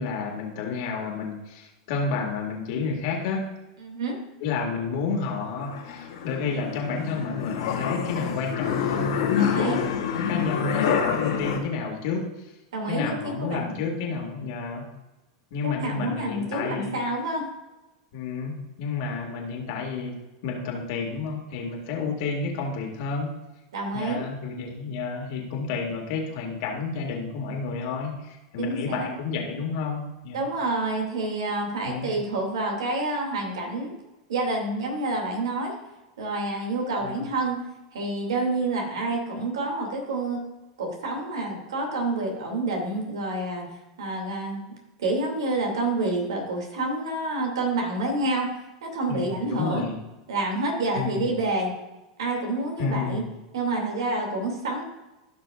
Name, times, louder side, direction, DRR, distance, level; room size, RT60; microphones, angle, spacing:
voice 1, 0.0-3.5 4.4-9.9 10.1-12.3 12.9-14.9 15.5-17.0 18.1-20.1 20.4-23.3 23.9-30.4 31.8-32.1 37.0-37.3 49.1-50.0 50.9-51.3 52.8-53.3, left 4 dB, 60° left, 1 dB, 2.1 m, -30 dB
voice 2, 3.8-4.2 9.4-9.9 12.7-13.8 15.6-17.5 23.7-24.2 28.6-29.1 30.3-33.9 34.3-35.7 36.2-37.6 37.9-40.4 40.8-43.7 44.0-44.6 45.0-48.6 48.8-49.8 50.3-51.7 52.2-53.2 53.5-54.8, right 2 dB, 80° right, 1 dB, 2.5 m, -28 dB
sound 1, 5.1-11.6, left 8 dB, 75° left, 1.9 m, -27 dB
15.0 x 6.1 x 2.5 m, 1.0 s
hypercardioid pair, 100°, 3 cm